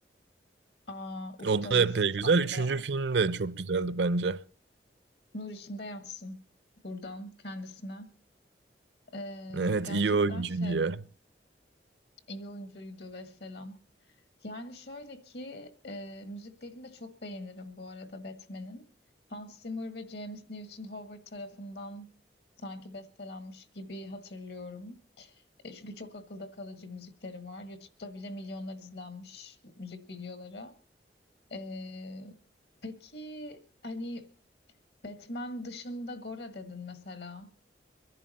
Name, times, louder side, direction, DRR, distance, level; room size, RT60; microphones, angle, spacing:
voice 1, 0.9-1.9 2.2-2.8 5.3-6.4 6.8-8.1 9.1-10.8 12.3-13.8 14.4-18.9 19.3-22.1 22.6-30.7 31.5-32.4 32.8-34.3 35.0-37.5, left 1 dB, 70° left, 1.6 m, -42 dB
voice 2, 1.4-4.4 9.5-11.0, right 4 dB, 85° right, 0.6 m, -27 dB
24.0 x 11.0 x 4.1 m
head